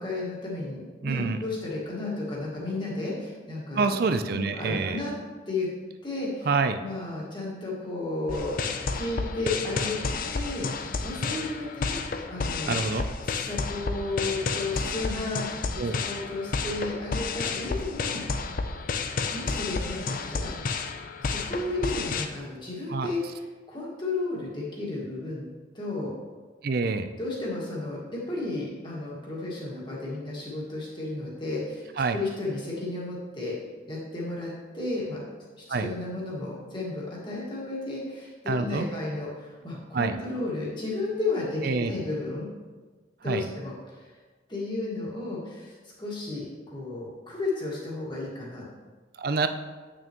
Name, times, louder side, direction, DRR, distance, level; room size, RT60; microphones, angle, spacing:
voice 1, 0.0-3.9 4.3-5.1 5.5-5.7 6.0-6.5 6.8-8.6 8.9-10.0 10.3-12.8 13.2-15.5 15.9-18.4 19.3-20.5 21.2-23.4 23.7-25.5 25.7-26.1 27.2-33.5 33.9-35.2 35.6-42.5 43.2-44.1 44.5-48.6, left 2 dB, 25° left, -5 dB, 1.7 m, -33 dB
voice 2, 1.0-1.4 3.7-5.0 6.5-6.8 12.7-13.0 15.8-16.0 22.9-23.1 26.6-27.1 32.0-32.2 35.7-35.9 38.5-38.9 39.9-40.2 41.6-41.9 43.3-43.4 49.2-49.5, right 4 dB, 50° right, 9 dB, 0.4 m, -26 dB
sound 1, 8.3-22.3, left 4 dB, 45° left, 0.4 m, -31 dB
8.7 x 6.2 x 3.0 m, 1.3 s
head